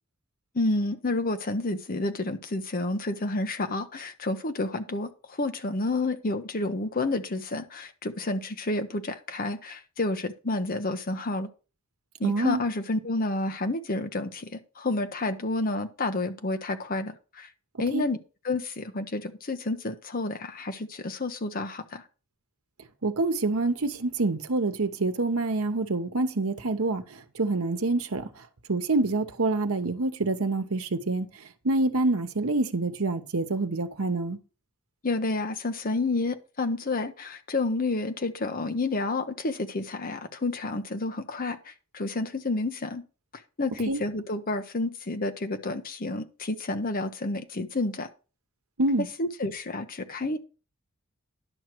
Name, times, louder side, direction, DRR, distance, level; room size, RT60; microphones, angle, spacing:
voice 1, 0.5-11.5 12.2-17.5 17.8-18.2 18.4-22.0 35.0-43.0 43.6-48.1 49.2-50.4, left 2 dB, 40° left, 0.9 m, -30 dB
voice 2, 12.2-12.6 17.9-18.0 23.0-27.0 27.4-28.3 28.7-31.3 31.6-34.4 43.9-44.0 48.8-49.1, right 2 dB, 85° right, 1.0 m, -26 dB
10.5 x 6.2 x 4.6 m
head